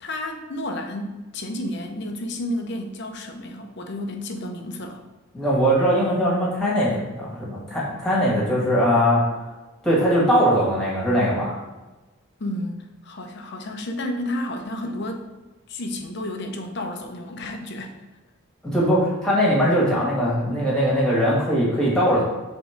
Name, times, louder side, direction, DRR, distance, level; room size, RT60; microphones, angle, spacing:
voice 1, 0.0-5.0 12.4-15.3 15.7-18.0, left 1 dB, 55° left, 4 dB, 0.7 m, -31 dB
voice 2, 5.3-9.2 9.8-11.5 18.6-22.2, equal, 5° left, -7 dB, 1.8 m, -20 dB
5.0 x 3.8 x 5.1 m, 1.2 s
head